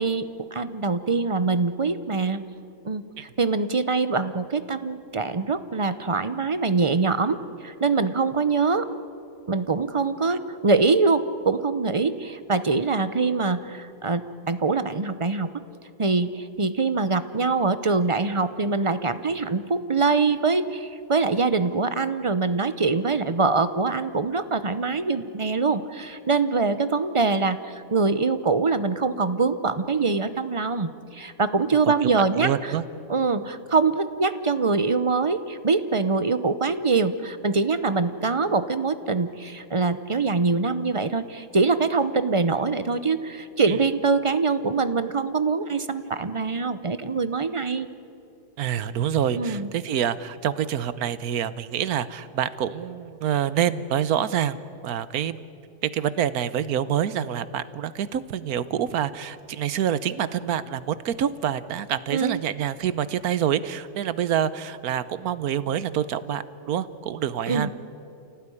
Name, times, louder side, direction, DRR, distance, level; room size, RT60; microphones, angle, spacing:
voice 1, 0.0-2.4 2.8-7.4 7.6-8.9 9.5-15.5 16.0-32.7 33.1-47.9 49.4-49.7 62.1-62.4 67.5-67.7, right 4 dB, 35° right, 12 dB, 0.5 m, -24 dB
voice 2, 32.4-32.8 43.7-43.8 48.6-54.6 54.8-55.4 55.9-67.7, right 9 dB, 70° right, 14 dB, 1.3 m, -26 dB
28.0 x 17.5 x 9.9 m, 2.6 s
omnidirectional pair, 1.7 m